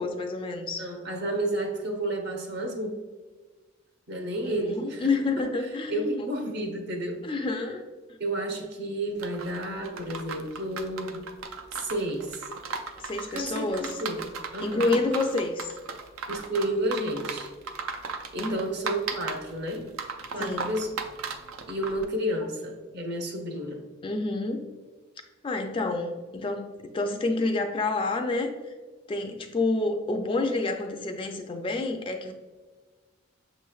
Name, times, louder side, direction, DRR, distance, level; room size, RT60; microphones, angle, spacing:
voice 1, 0.0-0.8 4.4-6.3 7.2-7.8 13.0-14.0 14.6-15.7 18.4-18.6 20.4-20.7 24.0-24.7 25.4-28.7 29.1-32.3, left 3 dB, 25° left, 5 dB, 0.3 m, -29 dB
voice 2, 0.8-2.9 4.1-5.1 5.4-7.5 8.2-11.3 11.7-12.5 13.2-15.0 16.3-17.5 18.3-19.9 20.3-20.9 21.7-23.8, right 1 dB, 55° right, 2 dB, 0.8 m, -31 dB
sound 1, 9.2-22.0, right 5 dB, 90° right, 0.4 m, -36 dB
6.2 x 3.1 x 2.3 m, 1.4 s
head